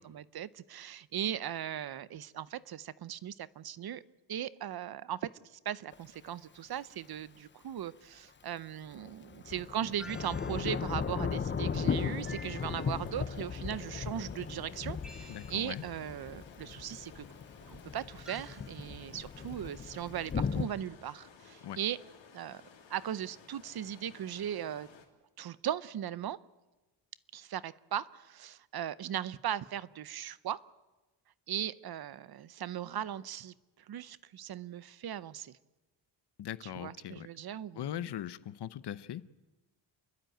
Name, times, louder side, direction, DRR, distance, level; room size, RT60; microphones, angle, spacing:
voice 1, 0.0-4.0 4.3-17.2 17.7-22.0 22.3-22.6 22.9-24.9 25.4-26.4 27.3-30.6 31.5-33.5 33.9-35.6 36.6-37.9, right 10 dB, 55° right, 0.7 m, -38 dB
Thunder / Rain, 5.9-6.0 8.9-20.7, left 6 dB, 25° left, 0.6 m, -37 dB
sound 1, 10.0-10.9 12.2-13.2 15.0-15.9 18.3-18.8, left 1 dB, ahead, 2.1 m, -52 dB
sound 2, 11.7-25.1, left 6 dB, 85° left, 3.2 m, -56 dB
voice 2, 15.3-15.8 21.6-21.8 36.4-37.3 37.8-39.3, left 11 dB, 65° left, 0.8 m, -40 dB
29.5 x 12.0 x 9.1 m
wide cardioid pair, 145°, 44 cm